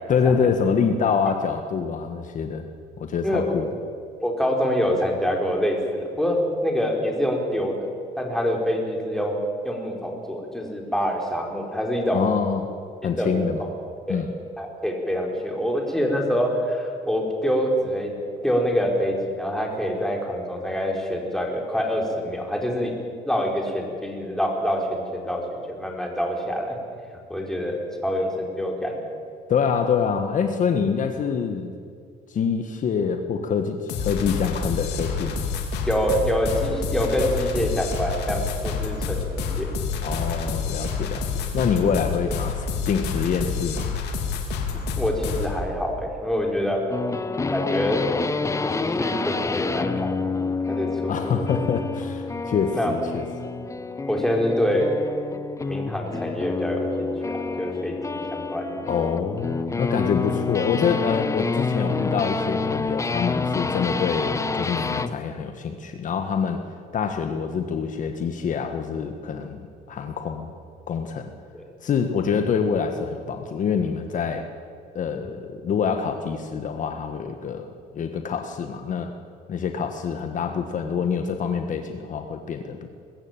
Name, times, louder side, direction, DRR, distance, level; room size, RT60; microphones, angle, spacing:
voice 1, 0.1-2.6 3.0-3.7 12.1-12.7 13.0-13.6 14.1-14.3 29.5-31.7 32.3-35.4 40.0-41.3 41.5-43.9 51.1-53.2 58.9-66.6 66.9-69.6 69.9-70.5 70.9-71.3 71.8-74.5 74.9-77.7 77.9-79.1 79.5-82.9, left 6 dB, 50° left, 6 dB, 1.4 m, -25 dB
voice 2, 3.2-3.5 4.2-12.2 13.0-13.4 14.1-14.2 14.6-18.1 18.4-22.9 23.2-25.4 25.7-26.8 27.3-29.0 35.9-39.7 45.0-46.8 47.5-48.0 48.6-50.2 50.7-51.4 52.7-52.9 54.1-54.9 55.6-58.8 59.9-60.1 71.5-71.7, equal, 5° left, 0 dB, 4.3 m, -26 dB
sound 1, 33.9-45.6, left 5 dB, 85° left, 2.8 m, -28 dB
sound 2, 46.9-65.2, left 4 dB, 20° left, 0.8 m, -28 dB
21.5 x 14.0 x 9.0 m, 2.3 s
cardioid pair, 110°, 17 cm